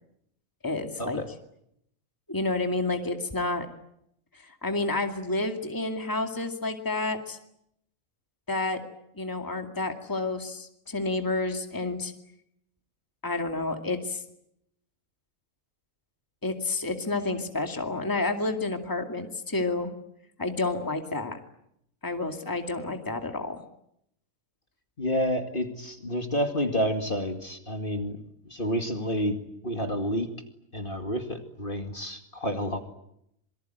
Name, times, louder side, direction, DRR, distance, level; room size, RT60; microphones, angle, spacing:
voice 1, 0.6-1.2 2.3-3.7 4.3-7.4 8.5-8.8 9.2-12.1 13.2-14.2 16.4-19.9 20.4-21.4 22.0-23.6, left 2 dB, 15° left, 5 dB, 2.3 m, -30 dB
voice 2, 25.0-28.2 28.4-29.4 29.6-30.3 30.7-32.8, equal, 35° left, 5 dB, 2.4 m, -29 dB
27.5 x 23.5 x 9.3 m, 0.78 s
omnidirectional pair, 1.5 m